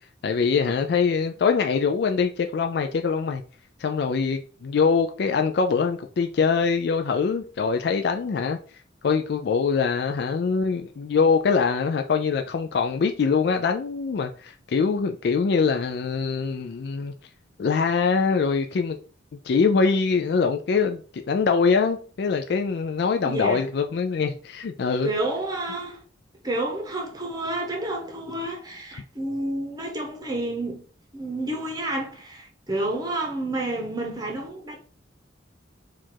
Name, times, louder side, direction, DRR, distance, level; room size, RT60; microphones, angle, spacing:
voice 1, 0.2-3.4 3.8-8.6 9.0-17.1 17.6-19.0 19.4-25.1 28.9-29.0, left 5 dB, 55° left, 0.3 m, -23 dB
voice 2, 23.2-23.6 25.0-26.0 26.4-30.8 31.1-34.8, right 1 dB, 20° right, 0.9 m, -30 dB
4.5 x 2.5 x 4.4 m
head